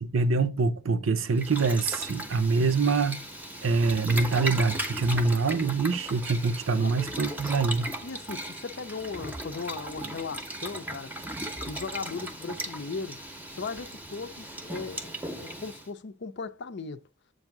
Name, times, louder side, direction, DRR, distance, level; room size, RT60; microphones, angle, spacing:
voice 1, 0.0-3.2 3.6-7.9, right 4 dB, 65° right, 0.7 m, -25 dB
Boiling, 1.3-15.9, right 1 dB, 10° right, 0.7 m, -37 dB
voice 2, 8.0-11.1 11.7-13.2 13.6-17.0, left 4 dB, 55° left, 0.5 m, -37 dB
7.8 x 2.7 x 5.9 m
head